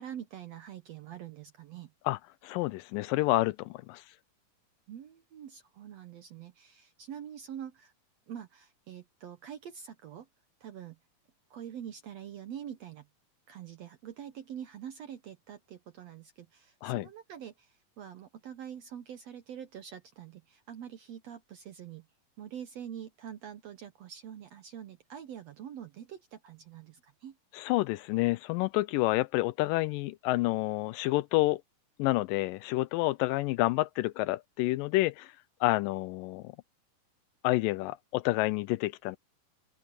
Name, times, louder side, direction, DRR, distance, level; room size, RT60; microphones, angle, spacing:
voice 1, 0.0-1.9 4.9-7.9 8.3-10.3 10.6-11.0 11.5-13.1 13.5-22.1 22.4-27.4, right 9 dB, 70° right, 1.6 m, -45 dB
voice 2, 2.1-4.0 16.8-17.1 27.5-31.6 32.0-35.3 35.6-36.5 37.4-39.2, left 19 dB, 80° left, 2.1 m, -29 dB
open air
omnidirectional pair, 4.1 m